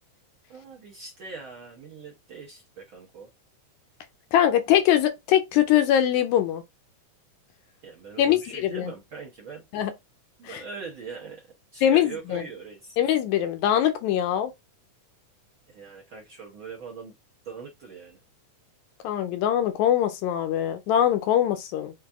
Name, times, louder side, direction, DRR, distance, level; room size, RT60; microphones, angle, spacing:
voice 1, 0.5-3.3 7.8-9.6 10.4-11.4 11.7-13.0 15.7-17.1 17.5-18.2, right 5 dB, 65° right, 1.3 m, -41 dB
voice 2, 4.3-6.6 8.2-8.9 9.7-9.9 10.5-10.6 11.8-12.4 13.0-14.5 19.0-21.9, left 11 dB, 80° left, 1.8 m, -22 dB
5.8 x 2.6 x 3.4 m
omnidirectional pair, 3.5 m